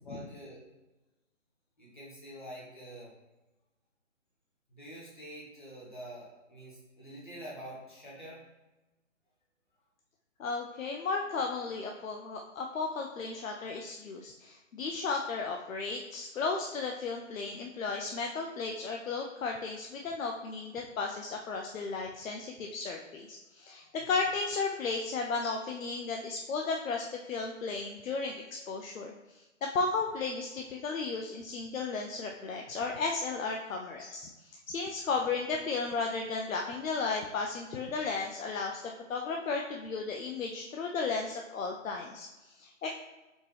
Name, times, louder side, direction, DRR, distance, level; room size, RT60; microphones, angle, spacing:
voice 1, 0.0-0.6 1.8-3.1 4.7-8.4 24.0-24.1, right 1 dB, 40° left, -5 dB, 1.1 m, -46 dB
voice 2, 10.4-29.4 29.7-42.9, left 4 dB, 85° left, 2 dB, 0.6 m, -34 dB
4.3 x 2.9 x 3.2 m, 1.1 s
hypercardioid pair, 180°, 39 cm